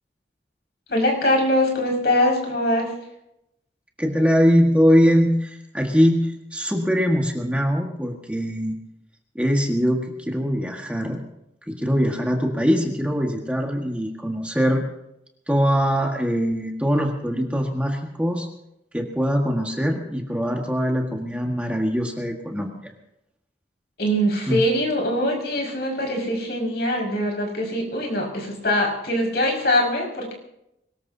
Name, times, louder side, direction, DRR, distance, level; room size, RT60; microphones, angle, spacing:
voice 1, 0.9-2.9 24.0-30.3, left 1 dB, 65° left, -1 dB, 5.8 m, -22 dB
voice 2, 4.0-8.8 9.3-11.2 11.7-14.8 15.5-18.5 18.9-22.9 24.5-24.6, equal, 5° right, 0 dB, 1.6 m, -22 dB
23.0 x 20.0 x 2.8 m, 0.83 s
head